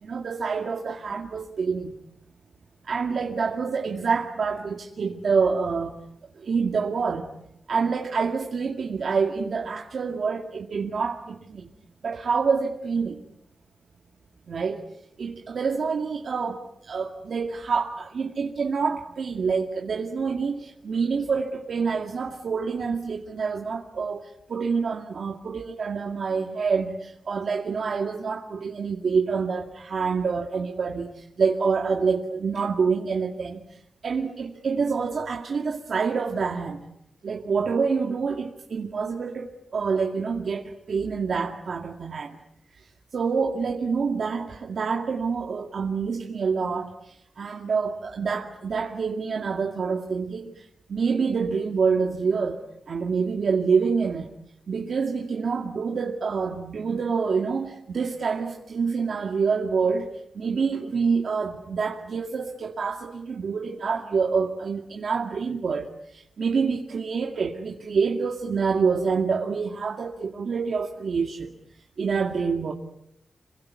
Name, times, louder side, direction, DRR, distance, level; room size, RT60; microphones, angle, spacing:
voice 1, 0.0-1.9 2.8-5.9 6.4-7.3 7.7-11.7 12.0-13.2 14.5-14.8 15.2-33.8 34.0-36.8 37.2-42.4 43.1-52.6 52.9-54.3 54.7-60.1 60.3-71.5 72.0-72.7, right 5 dB, 65° right, 2 dB, 2.2 m, -27 dB
27.5 x 22.5 x 9.6 m, 0.81 s
wide cardioid pair, 115°, 0 cm